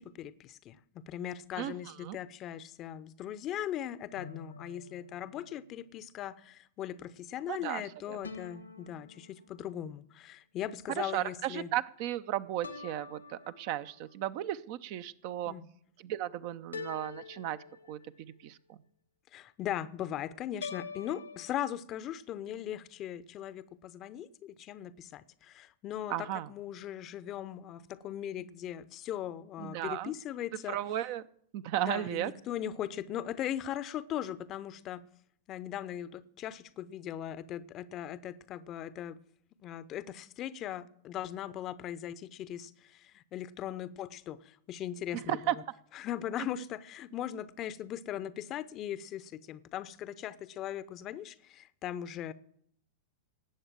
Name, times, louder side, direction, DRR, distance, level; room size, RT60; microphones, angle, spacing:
voice 1, 0.0-11.7 15.5-15.7 19.3-30.8 31.8-35.0 35.5-39.2 39.6-45.6 45.9-52.3, left 11 dB, 30° left, 0.7 m, -39 dB
sound 1, 4.2-5.8 8.2-9.9 12.6-14.1 16.7-18.3 20.6-21.5, left 5 dB, 80° left, 1.4 m, -46 dB
voice 2, 7.5-7.8 8.1-8.2 11.0-15.5 16.0-17.6 17.9-18.8 26.1-26.5 29.6-30.1 30.7-31.2 31.5-32.3 45.3-45.6, right 13 dB, 45° right, 0.6 m, -35 dB
19.0 x 8.0 x 7.6 m
figure-of-eight pair, 95°, 0 cm